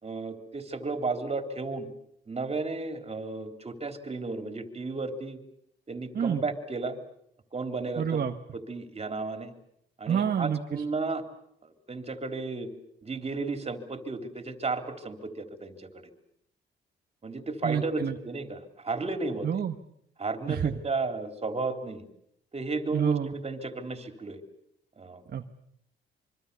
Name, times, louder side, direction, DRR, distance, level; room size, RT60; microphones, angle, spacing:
voice 1, 0.0-1.9 2.3-5.4 5.9-7.0 7.5-8.2 8.7-9.5 10.0-11.2 11.6-12.7 13.0-16.0 17.2-19.6 20.2-22.0 22.5-24.4 25.0-25.2, right 3 dB, 30° right, 7 dB, 3.6 m, -33 dB
voice 2, 8.0-8.3 10.1-10.8 17.6-18.2 19.4-19.8 20.5-20.8 22.9-23.3 25.3-25.5, right 8 dB, 50° right, 5 dB, 1.3 m, -28 dB
25.5 x 24.0 x 7.0 m, 0.72 s
cardioid pair, 90°, 20 cm